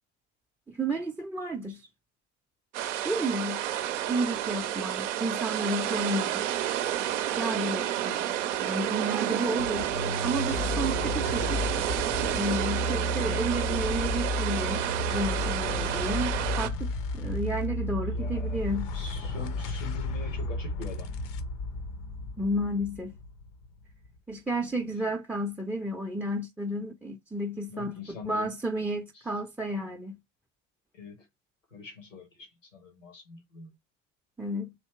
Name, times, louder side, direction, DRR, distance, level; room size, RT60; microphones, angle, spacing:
voice 1, 0.7-1.9 3.0-3.7 4.1-6.4 7.4-9.9 10.2-11.6 12.3-14.8 15.1-18.9 22.4-23.2 24.3-28.0 28.3-30.2 34.4-34.7, right 1 dB, 5° right, 0.5 m, -32 dB
sound 1, 2.7-16.7, right 12 dB, 75° right, 0.6 m, -30 dB
sound 2, 9.6-24.2, left 2 dB, 60° left, 0.7 m, -33 dB
voice 2, 18.0-21.1 24.6-24.8 27.7-28.6 30.9-31.3 31.7-33.8, left 4 dB, 85° left, 1.3 m, -43 dB
3.3 x 2.8 x 4.3 m
figure-of-eight pair, 60°, 37 cm